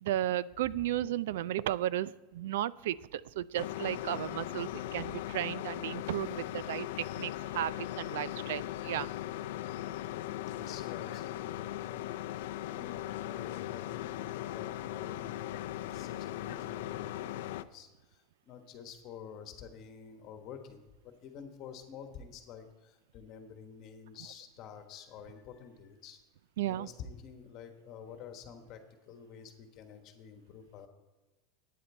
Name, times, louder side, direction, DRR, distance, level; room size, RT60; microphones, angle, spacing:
voice 1, 0.0-9.1 26.6-26.9, right 13 dB, 85° right, 19 dB, 0.3 m, -34 dB
sound 1, 3.5-17.6, left 13 dB, 70° left, 0.5 m, -39 dB
voice 2, 10.0-12.0 12.3-26.2 26.7-30.9, left 7 dB, 35° left, 6 dB, 1.3 m, -49 dB
12.0 x 9.4 x 4.4 m, 1.2 s
supercardioid pair, 180°, 0 cm